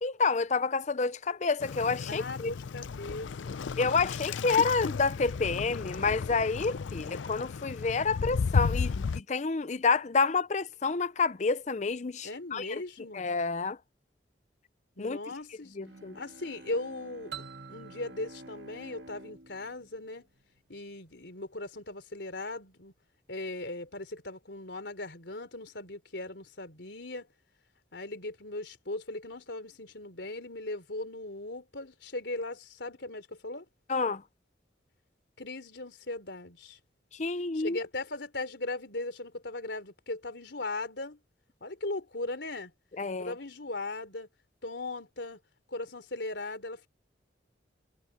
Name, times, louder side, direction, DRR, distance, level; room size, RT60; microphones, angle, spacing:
voice 1, 0.0-2.5 3.8-12.7 13.1-13.8 15.0-15.2 15.8-16.2 33.9-34.2 37.1-37.8 43.0-43.3, left 4 dB, 40° left, 0.6 m, -29 dB
Waves surf, 1.6-9.2, left 5 dB, 90° left, 0.5 m, -33 dB
voice 2, 2.1-3.6 12.2-13.3 15.0-15.8 16.1-17.4 17.7-20.3 20.7-22.9 23.3-27.3 27.9-33.7 35.4-36.8 37.5-41.2 41.6-42.7 43.2-44.3 44.6-45.4 45.7-46.9, left 2 dB, 70° left, 3.6 m, -38 dB
Bowed string instrument, 15.8-21.1, right 1 dB, 70° right, 1.8 m, -52 dB
sound 1, 17.3-20.0, right 7 dB, 90° right, 3.9 m, -48 dB
head